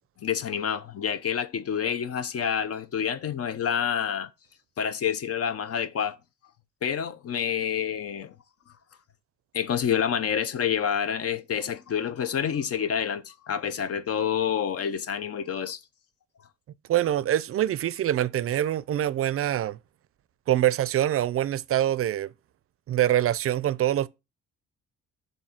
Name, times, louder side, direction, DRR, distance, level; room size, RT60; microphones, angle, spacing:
voice 1, 0.2-4.3 4.8-6.2 6.8-8.3 9.5-15.8, left 8 dB, 50° left, 0.6 m, -28 dB
voice 2, 16.9-19.8 20.5-22.3 22.9-24.1, right 12 dB, 50° right, 0.4 m, -24 dB
7.5 x 2.7 x 5.8 m
cardioid pair, 90°, 30 cm